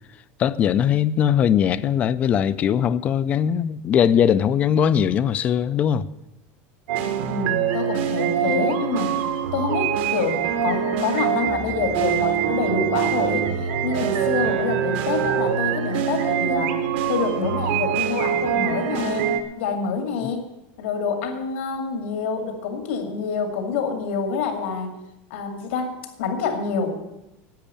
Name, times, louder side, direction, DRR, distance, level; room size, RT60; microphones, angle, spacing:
voice 1, 0.4-6.1, left 9 dB, 20° left, 0.4 m, -20 dB
sound 1, 6.9-19.4, right 8 dB, 65° right, 1.3 m, -24 dB
voice 2, 7.3-9.2 9.5-13.5 13.8-16.8 17.1-19.3 19.6-20.5 20.8-24.9 25.3-25.9 26.2-27.0, left 5 dB, 80° left, 2.3 m, -27 dB
10.5 x 9.2 x 8.6 m
supercardioid pair, 180°, 6 cm